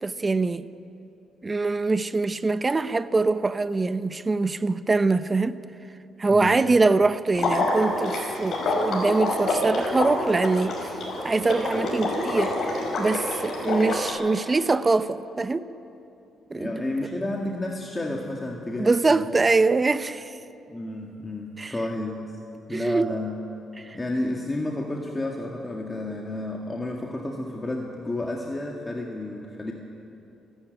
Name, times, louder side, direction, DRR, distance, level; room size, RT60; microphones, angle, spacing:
voice 1, 0.0-0.7 1.4-5.6 6.2-10.9 11.2-15.7 16.5-16.7 18.8-20.4 21.6-21.7 22.7-23.1 23.8-24.0, right 3 dB, 25° right, 0.6 m, -23 dB
voice 2, 6.3-6.7 16.5-19.3 20.7-22.3 22.7-23.4 23.9-29.7, left 1 dB, 20° left, 1.9 m, -31 dB
Water / Liquid, 7.3-14.1, left 2 dB, 60° left, 5.5 m, -27 dB
25.0 x 12.0 x 9.2 m
cardioid pair, 90°, 0 cm